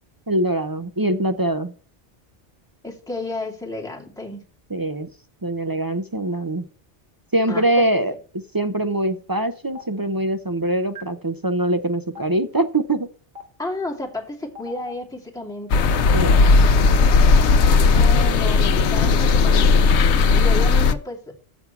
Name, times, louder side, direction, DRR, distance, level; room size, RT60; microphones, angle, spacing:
voice 1, 0.3-1.7 4.7-5.1 5.4-6.6 7.3-8.1 8.5-13.1 16.1-16.4, right 1 dB, 25° right, 9 dB, 0.5 m, -23 dB
voice 2, 2.8-4.4 7.5-7.9 13.6-15.9 17.8-19.7 20.1-21.2, left 2 dB, 5° left, -3 dB, 2.5 m, -32 dB
Stream, 9.8-9.9 11.0-11.1 12.2-12.3 13.4-13.5 14.6-14.9, left 3 dB, 60° right, 2.3 m, -36 dB
sound 1, 15.7-20.9, left 4 dB, 75° left, 1.0 m, -16 dB
7.2 x 5.9 x 7.0 m, 0.41 s
omnidirectional pair, 1.2 m